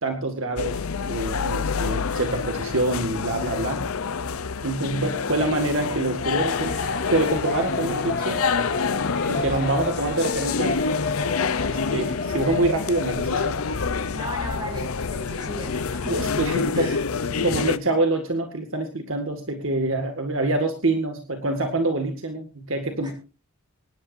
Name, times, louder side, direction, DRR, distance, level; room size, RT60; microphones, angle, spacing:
voice 1, 0.0-3.8 4.6-6.8 7.1-8.4 9.3-10.8 11.7-13.6 16.1-16.9 17.4-23.1, right 2 dB, 65° right, 5 dB, 2.0 m, -26 dB
sound 1, 0.6-17.8, left 5 dB, 80° left, 0.7 m, -27 dB
voice 2, 4.8-5.6 14.1-16.3 16.7-17.0 23.0-23.1, right 1 dB, 20° right, 1 dB, 7.5 m, -37 dB
sound 2, 6.2-13.9, left 3 dB, 50° left, 2.0 m, -32 dB
24.5 x 11.0 x 2.7 m, 0.31 s
head